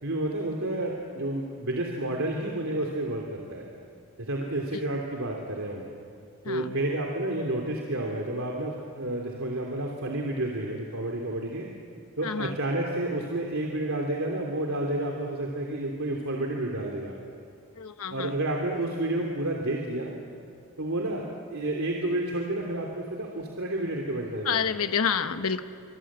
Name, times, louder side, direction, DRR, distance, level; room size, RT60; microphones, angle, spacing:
voice 1, 0.0-3.7 4.2-5.9 6.4-11.7 12.2-17.1 18.1-20.1 20.8-21.2 21.5-24.7, right 1 dB, 70° right, 0 dB, 3.0 m, -30 dB
voice 2, 6.4-6.8 12.2-12.6 17.7-18.3 24.4-25.6, left 6 dB, 85° left, 9 dB, 1.1 m, -29 dB
26.5 x 25.0 x 8.7 m, 2.4 s
head